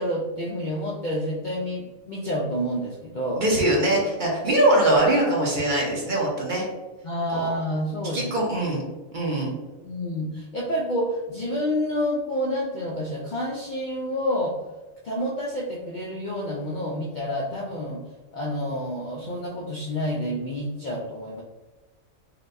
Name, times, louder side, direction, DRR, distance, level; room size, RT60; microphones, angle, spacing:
voice 1, 0.0-3.4 7.0-8.3 9.8-14.6 15.0-18.1 18.3-21.4, equal, 85° left, -2 dB, 0.4 m, -28 dB
voice 2, 3.4-6.7 7.3-7.5 8.1-8.8 9.1-9.5, right 1 dB, 45° right, -3 dB, 0.8 m, -22 dB
4.0 x 2.2 x 2.5 m, 1.2 s
omnidirectional pair, 1.4 m